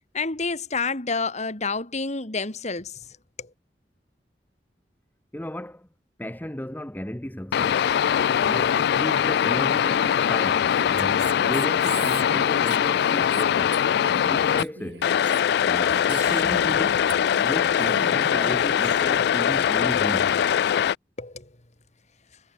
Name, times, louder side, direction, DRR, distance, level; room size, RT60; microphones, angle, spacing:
voice 1, 0.1-3.1 3.4-3.5 21.2-21.5, left 4 dB, 40° left, 2.4 m, -29 dB
voice 2, 5.3-5.9 6.2-7.9 8.4-13.8 14.3-15.1 15.6-17.0 17.4-20.4, equal, 10° left, 1.3 m, -34 dB
sound 1, 7.5-14.6 15.0-20.9, left 8 dB, 60° left, 0.3 m, -22 dB
Female speech woman speaking, 10.7-17.5 17.8-19.1, right 5 dB, 65° right, 2.6 m, -40 dB
head